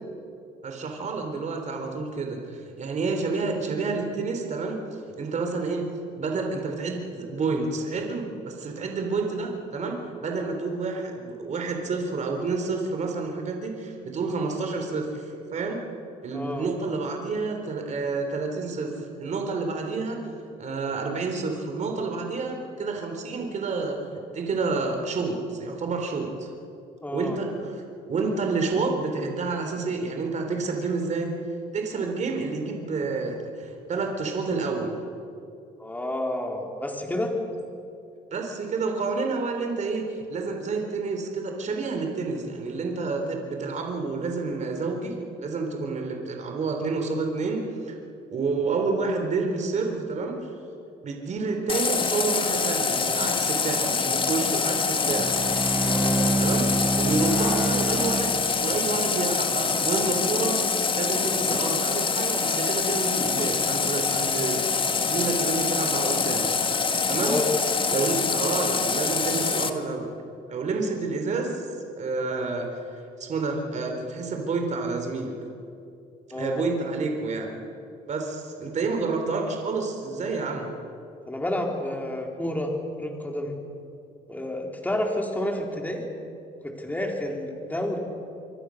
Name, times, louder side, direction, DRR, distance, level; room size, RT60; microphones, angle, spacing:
voice 1, 0.6-4.8 5.2-5.9 6.1-15.9 16.2-20.3 20.6-26.5 27.1-27.5 28.1-31.3 31.7-35.0 38.3-47.9 48.3-50.5 51.0-55.4 56.4-56.7 57.0-60.6 60.9-64.6 64.9-66.5 67.1-67.4 67.9-70.1 70.5-71.6 72.0-72.8 73.2-75.3 76.3-77.6 78.1-80.7, right 4 dB, 45° right, 3 dB, 4.0 m, -29 dB
voice 2, 16.3-16.7 27.0-27.4 35.8-37.4 55.8-56.4 67.0-67.5 76.3-76.7 81.3-82.7 83.0-83.6 84.3-86.1 86.6-88.0, left 1 dB, 10° left, 1 dB, 4.0 m, -30 dB
Water tap faucet, 51.7-69.7, left 5 dB, 30° left, 1.7 m, -25 dB
Bowed string instrument, 55.0-59.0, right 2 dB, 10° right, 0.6 m, -27 dB
26.5 x 24.5 x 6.6 m, 2.6 s
cardioid pair, 110°, 17 cm